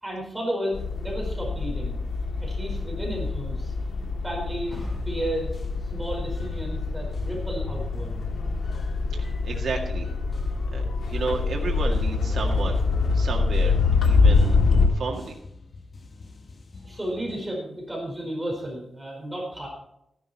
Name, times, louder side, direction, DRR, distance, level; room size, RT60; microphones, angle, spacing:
voice 1, 0.0-2.0 2.4-3.7 4.2-5.5 5.8-8.2 16.8-19.7, right 1 dB, 10° right, -2 dB, 4.7 m, -33 dB
sound 1, 0.7-14.9, left 4 dB, 85° left, 2.0 m, -25 dB
sound 2, 4.7-17.5, left 3 dB, 40° left, 1.4 m, -42 dB
voice 2, 9.2-10.1 10.7-12.8 13.1-13.8 14.0-15.4, right 4 dB, 70° right, 0 dB, 2.0 m, -32 dB
13.5 x 12.0 x 4.4 m, 0.80 s
wide cardioid pair, 140°, 0 cm